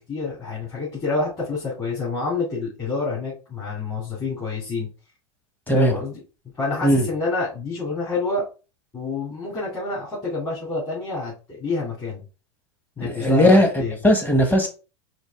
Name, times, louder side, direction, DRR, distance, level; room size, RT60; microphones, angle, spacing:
voice 1, 0.1-4.9 5.7-6.2 6.6-8.4 8.9-12.2 13.0-14.0, left 3 dB, 25° left, 2.4 m, -28 dB
voice 2, 13.0-13.7 14.0-14.7, equal, 10° left, 1.1 m, -17 dB
4.5 x 2.6 x 3.5 m
hypercardioid pair, 115°, 15 cm